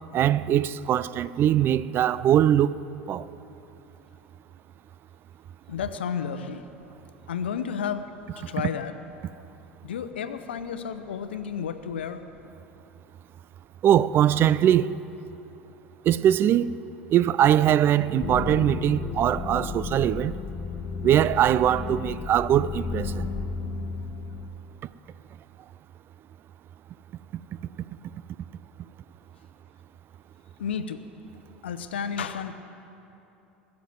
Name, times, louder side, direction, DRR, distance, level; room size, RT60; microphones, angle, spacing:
voice 1, 0.1-2.8 3.1-3.2 13.8-14.9 16.1-16.8 17.1-20.3 21.0-23.3, right 11 dB, 40° right, 0.4 m, -21 dB
voice 2, 5.7-6.7 7.3-8.1 8.4-8.9 9.8-12.2 30.6-31.0 31.6-32.5, left 7 dB, 80° left, 0.8 m, -32 dB
sound 1, 18.2-24.5, left 5 dB, 35° left, 1.1 m, -33 dB
19.5 x 7.3 x 7.7 m
hypercardioid pair, 80°, 6 cm